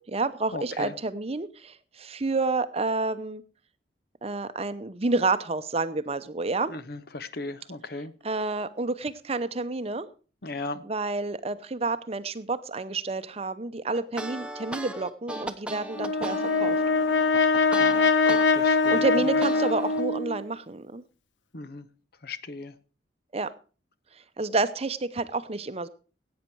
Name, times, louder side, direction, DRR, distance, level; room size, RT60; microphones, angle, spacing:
voice 1, 0.0-3.4 4.2-6.7 8.2-10.1 10.8-16.8 18.7-21.0 23.3-23.5 24.1-25.9, right 3 dB, 35° right, 12 dB, 0.7 m, -29 dB
voice 2, 0.5-0.9 6.7-8.1 10.4-10.8 17.7-19.0 21.5-21.9 22.2-22.7, left 2 dB, 55° left, 14 dB, 0.9 m, -37 dB
sound 1, 13.9-18.5 18.8-20.0, right 1 dB, 5° right, 0.9 m, -37 dB
Brass instrument, 16.0-20.4, left 4 dB, 85° left, 1.1 m, -23 dB
16.5 x 8.8 x 4.6 m, 0.36 s
head